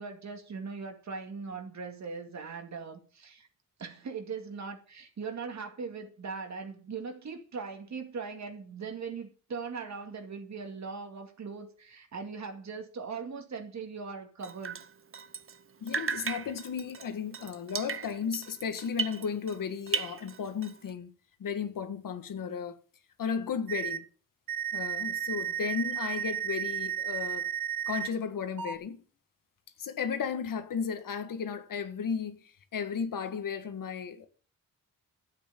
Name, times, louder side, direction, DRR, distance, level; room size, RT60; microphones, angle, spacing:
voice 1, 0.0-3.5 3.8-14.8, right 5 dB, 55° right, 2.2 m, -40 dB
Drip, 14.4-15.6 15.9-19.6 19.9-20.9, right 6 dB, 40° right, 0.9 m, -36 dB
voice 2, 15.8-21.1 21.4-22.8 23.2-24.0 24.7-27.5 27.9-29.0 29.8-34.3, left 6 dB, 70° left, 1.6 m, -34 dB
sound 1, 23.7-24.0 24.5-28.1 28.6-28.8, right 9 dB, 80° right, 1.3 m, -33 dB
12.5 x 8.5 x 7.0 m
wide cardioid pair, 140°, 34 cm